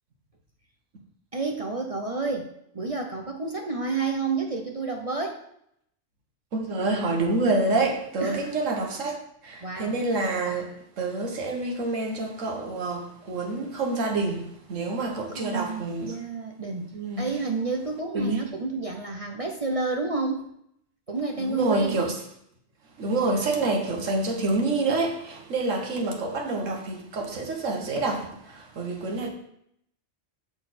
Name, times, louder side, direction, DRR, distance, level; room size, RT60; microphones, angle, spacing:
voice 1, 1.3-5.4 8.2-8.5 9.6-10.0 15.3-20.4 21.1-22.0, right 3 dB, 35° right, 0.6 m, -30 dB
voice 2, 6.5-16.2 16.9-17.3 18.1-18.4 21.4-22.1 23.0-29.3, right 2 dB, 80° right, 1.6 m, -27 dB
6.7 x 6.4 x 4.3 m
omnidirectional pair, 1.3 m